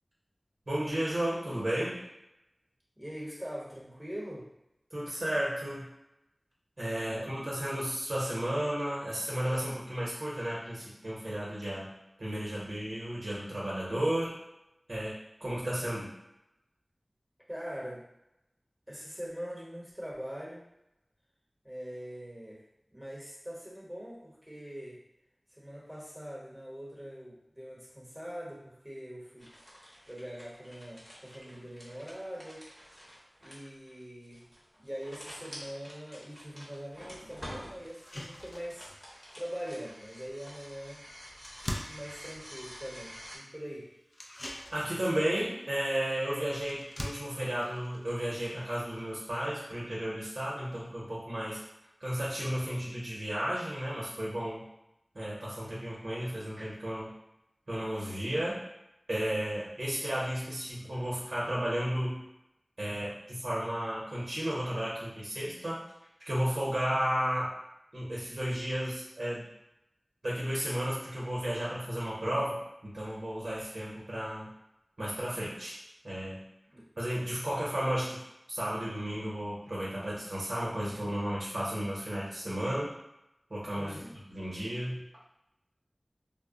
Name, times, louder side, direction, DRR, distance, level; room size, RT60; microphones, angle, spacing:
voice 1, 0.7-2.0 4.9-5.9 6.8-11.9 12.2-14.3 14.9-15.1 15.4-16.1 44.7-51.6 52.0-54.6 55.1-57.1 57.7-58.6 59.1-62.2 62.8-65.8 66.3-67.5 67.9-69.5 70.2-72.6 72.8-74.5 75.0-75.8 76.0-76.4 77.0-78.2 78.5-82.9 83.5-84.0 84.3-85.0, equal, 75° right, -7 dB, 0.8 m, -33 dB
voice 2, 3.0-4.5 7.0-7.6 17.5-18.0 18.9-20.7 21.6-22.6 22.9-25.0 25.5-29.5 30.1-32.6 33.4-34.5 34.8-38.9 39.3-41.0 41.7-43.9 59.8-60.0 66.9-67.1 76.7-76.9 83.7-84.2, equal, 10° right, -6 dB, 1.0 m, -43 dB
sound 1, 29.4-43.4, equal, 10° left, 0.9 m, -49 dB
sound 2, 36.8-36.9 37.4-37.5 37.8-49.5, left 1 dB, 40° left, 0.4 m, -46 dB
2.1 x 2.0 x 3.6 m, 0.86 s
wide cardioid pair, 55°, 0 cm